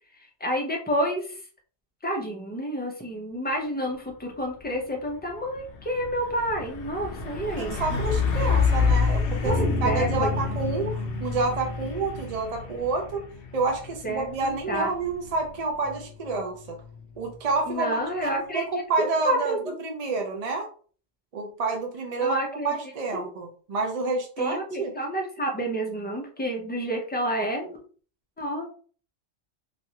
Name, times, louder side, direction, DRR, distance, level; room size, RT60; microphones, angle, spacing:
voice 1, 0.4-1.3 2.0-8.0 9.4-10.3 14.0-14.9 17.7-18.6 19.0-19.8 22.2-22.7 23.1-23.3 24.4-27.8 28.4-28.7, right 1 dB, 15° left, 1 dB, 0.4 m, -29 dB
Truck, 4.5-4.7 5.1-17.6, left 5 dB, 60° left, 0.7 m, -29 dB
voice 2, 7.6-13.2 13.5-16.8 17.2-20.7 21.3-22.4 22.6-24.9, right 3 dB, 50° right, 1 dB, 0.5 m, -29 dB
sound 1, 9.5-12.4, equal, 75° right, 1.2 m, -31 dB
3.0 x 2.4 x 2.8 m, 0.42 s
omnidirectional pair, 1.3 m